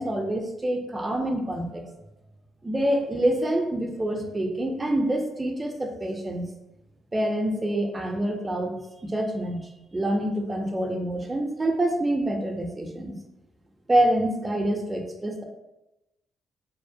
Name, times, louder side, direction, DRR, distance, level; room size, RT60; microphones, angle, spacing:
voice 1, 0.0-1.9 2.6-6.5 7.1-8.7 9.0-13.2 13.9-15.4, right 1 dB, 20° right, 3 dB, 0.4 m, -26 dB
2.6 x 2.1 x 2.6 m, 0.94 s
cardioid pair, 90°, 0 cm